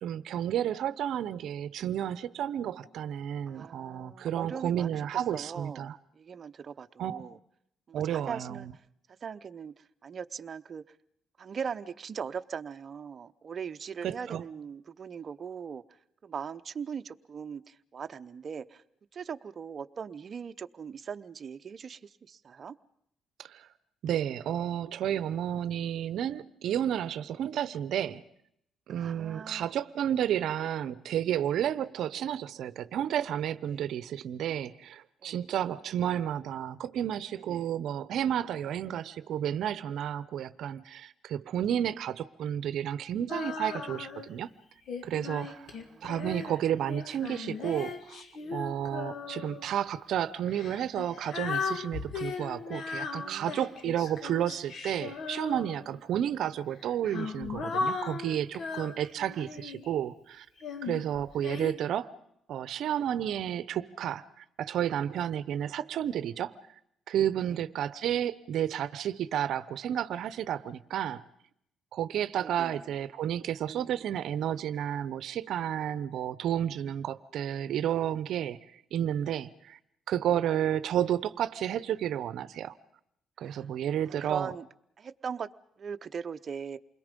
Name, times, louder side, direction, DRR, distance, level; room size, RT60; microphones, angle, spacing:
voice 1, 0.0-6.0 7.0-7.2 7.9-8.7 14.0-14.4 23.4-23.7 24.0-28.2 28.9-44.5 45.0-45.7 46.0-48.2 48.5-60.5 60.8-62.1 62.5-66.5 67.1-71.2 71.9-79.8 80.1-82.7 83.4-84.5, right 10 dB, 75° right, 0.8 m, -31 dB
voice 2, 3.5-7.4 7.9-8.7 9.2-10.8 11.4-15.8 16.2-18.8 19.1-22.8 28.9-29.7 33.7-33.8 35.2-35.4 37.4-37.6 45.4-46.1 48.4-48.6 53.1-53.7 59.3-59.4 72.3-72.9 73.6-74.1 83.4-83.7 84.0-84.7 85.0-85.5 85.8-86.8, right 6 dB, 45° right, 0.9 m, -40 dB
Female singing, 43.3-44.3 44.9-49.7 50.5-56.0 56.8-59.9 60.6-61.7, left 4 dB, 65° left, 2.5 m, -37 dB
28.5 x 21.5 x 5.3 m
cardioid pair, 90°, 0 cm